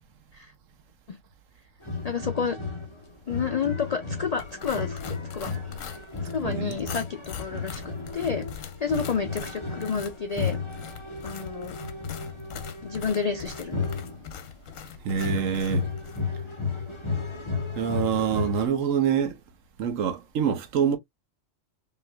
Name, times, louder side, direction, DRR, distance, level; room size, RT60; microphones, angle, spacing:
sound 1, 1.8-14.7 15.2-18.7, left 4 dB, 25° left, 0.9 m, -34 dB
voice 1, 2.0-2.6 3.3-5.9 6.2-8.5 8.8-10.6 11.2-11.8 12.8-13.9, left 6 dB, 65° left, 0.4 m, -30 dB
sound 2, 4.4-16.2, left 7 dB, 85° left, 1.1 m, -42 dB
voice 2, 6.4-6.8 15.0-15.9 17.7-19.4 19.8-21.0, right 7 dB, 80° right, 1.2 m, -25 dB
5.4 x 2.8 x 2.2 m
omnidirectional pair, 1.3 m